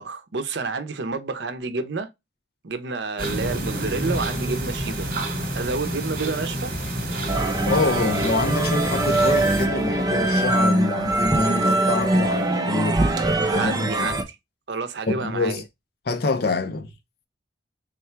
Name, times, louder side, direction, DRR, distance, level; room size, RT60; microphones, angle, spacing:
voice 1, 0.0-2.1 2.6-5.2 5.5-6.7 13.5-14.2 14.7-15.6, right 4 dB, 65° right, 0.6 m, -29 dB
sound 1, 3.2-9.7, right 1 dB, 50° right, 1.2 m, -29 dB
sound 2, 7.3-14.2, right 1 dB, 20° right, 0.5 m, -22 dB
voice 2, 7.7-13.0 13.4-14.1 15.1-15.6 16.1-16.9, left 3 dB, 55° left, 0.6 m, -26 dB
3.6 x 2.3 x 4.3 m
head